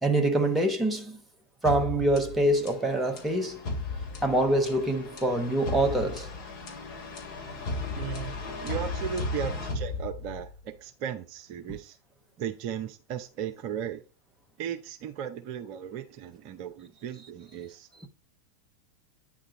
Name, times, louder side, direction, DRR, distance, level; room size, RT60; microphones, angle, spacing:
voice 1, 0.0-1.2 1.6-3.7 4.2-6.3, right 1 dB, 10° right, 1.1 m, -25 dB
sound 1, 1.6-10.6, left 3 dB, 40° left, 2.3 m, -35 dB
voice 2, 7.9-8.4 8.6-12.0 12.4-14.0 14.6-17.9, right 9 dB, 45° right, 0.6 m, -36 dB
9.0 x 3.7 x 4.1 m
figure-of-eight pair, 90°, 0 cm